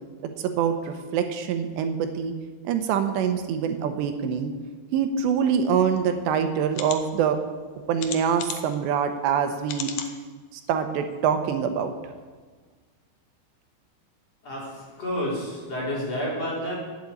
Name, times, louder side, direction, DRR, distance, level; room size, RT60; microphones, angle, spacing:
voice 1, 0.4-2.3 2.6-4.5 4.9-7.4 7.9-9.9 10.5-11.9, right 7 dB, 80° right, 7 dB, 3.0 m, -25 dB
sound 1, 6.0-6.1 6.7-7.0 8.0-8.8 9.7-10.1 10.7-10.8 11.1-11.2, left 8 dB, 75° left, 2.0 m, -34 dB
voice 2, 14.4-16.8, equal, 35° left, -5 dB, 4.8 m, -30 dB
11.5 x 8.6 x 8.6 m, 1.4 s
omnidirectional pair, 5.1 m